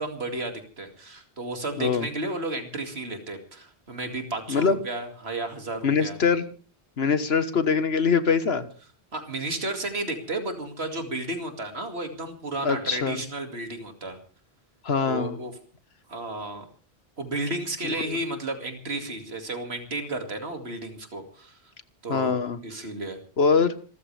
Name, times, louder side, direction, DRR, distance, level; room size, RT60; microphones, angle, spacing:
voice 1, 0.0-6.2 9.1-14.2 15.1-15.5 16.1-16.6 17.2-21.6 22.0-23.2, right 2 dB, 70° right, 5 dB, 2.7 m, -33 dB
voice 2, 5.8-6.4 7.0-8.7 12.6-13.2 14.8-15.4 18.1-18.2 22.1-22.6 23.4-23.7, left 5 dB, 70° left, 11 dB, 1.5 m, -23 dB
26.5 x 14.0 x 3.4 m, 0.39 s
omnidirectional pair, 1.1 m